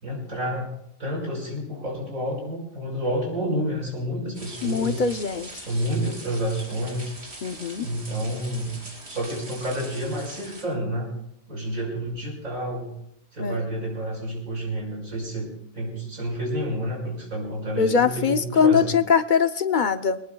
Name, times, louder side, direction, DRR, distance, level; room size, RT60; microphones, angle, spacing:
voice 1, 0.0-0.7 1.0-5.1 5.7-7.1 7.8-8.8 9.1-11.1 11.5-12.9 13.3-18.9, equal, 80° right, -1 dB, 5.8 m, -29 dB
sound 1, 4.3-10.6, right 1 dB, 50° right, 3.5 m, -42 dB
voice 2, 4.6-5.6 7.4-7.9 13.4-13.6 17.8-20.2, left 6 dB, 50° left, 9 dB, 0.6 m, -22 dB
22.5 x 19.5 x 2.3 m, 0.77 s
omnidirectional pair, 1.4 m